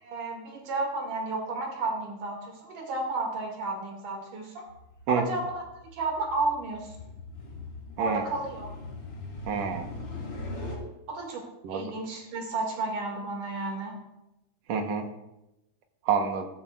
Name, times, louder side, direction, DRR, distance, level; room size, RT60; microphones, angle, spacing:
voice 1, 0.0-4.6 5.1-5.6 5.9-7.0 8.0-8.7 11.1-14.0, right 3 dB, 85° right, 1 dB, 3.6 m, -32 dB
sound 1, 4.7-10.8, left 2 dB, 40° left, 3.3 m, -41 dB
voice 2, 9.5-9.9 11.6-11.9 14.7-15.1 16.1-16.5, right 6 dB, 65° right, 5 dB, 2.1 m, -28 dB
14.5 x 13.5 x 2.4 m, 0.92 s
omnidirectional pair, 3.5 m